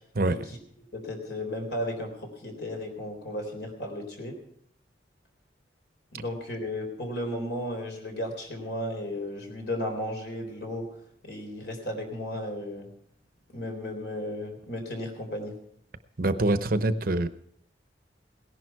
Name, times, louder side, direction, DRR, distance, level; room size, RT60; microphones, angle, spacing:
voice 1, 0.2-0.6 0.9-4.4 6.1-10.8 11.2-12.9 13.5-15.6, left 1 dB, 65° left, 4 dB, 3.8 m, -34 dB
voice 2, 16.2-17.3, right 2 dB, 50° right, 11 dB, 0.8 m, -25 dB
18.0 x 11.0 x 4.7 m, 0.68 s
head